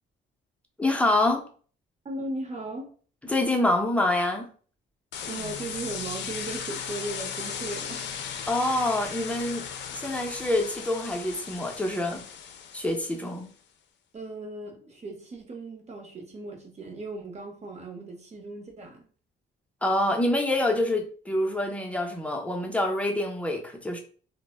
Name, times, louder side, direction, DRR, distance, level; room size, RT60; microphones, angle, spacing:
voice 1, 0.8-1.5 3.3-4.5 8.5-9.7 9.9-12.3 12.7-13.5 19.8-24.0, left 1 dB, 5° left, 0.5 m, -26 dB
voice 2, 2.0-2.9 5.3-8.1 14.1-19.1, right 2 dB, 35° right, 0.8 m, -37 dB
sound 1, 5.1-13.3, left 7 dB, 65° left, 0.4 m, -37 dB
2.0 x 2.0 x 3.2 m
cardioid pair, 90°, 20 cm